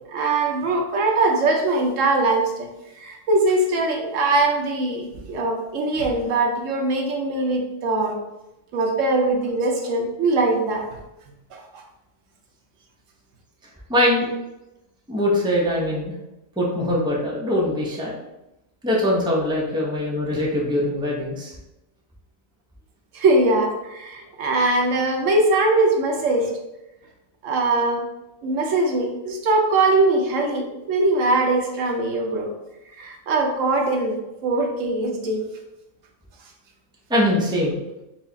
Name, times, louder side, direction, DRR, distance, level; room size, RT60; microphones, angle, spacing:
voice 1, 0.1-2.7 3.0-8.1 8.7-10.9 11.5-11.8 23.1-26.5 27.4-28.0 28.4-32.5 33.0-34.2 34.4-35.4, right 2 dB, 75° right, 1 dB, 1.0 m, -21 dB
voice 2, 13.9-14.3 15.1-16.1 16.6-18.2 18.8-21.5 37.1-37.8, left 1 dB, 5° right, -4 dB, 0.7 m, -22 dB
4.7 x 2.4 x 3.9 m, 0.95 s
omnidirectional pair, 1.4 m